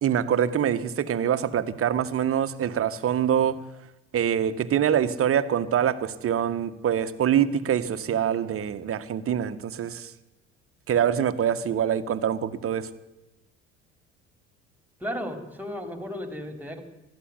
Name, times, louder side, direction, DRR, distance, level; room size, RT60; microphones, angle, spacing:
voice 1, 0.0-3.6 4.1-10.1 10.9-12.9, right 9 dB, 40° right, 12 dB, 1.7 m, -25 dB
voice 2, 15.0-16.8, equal, 5° right, 8 dB, 4.2 m, -34 dB
21.5 x 15.0 x 9.7 m, 0.98 s
figure-of-eight pair, 60°, 36 cm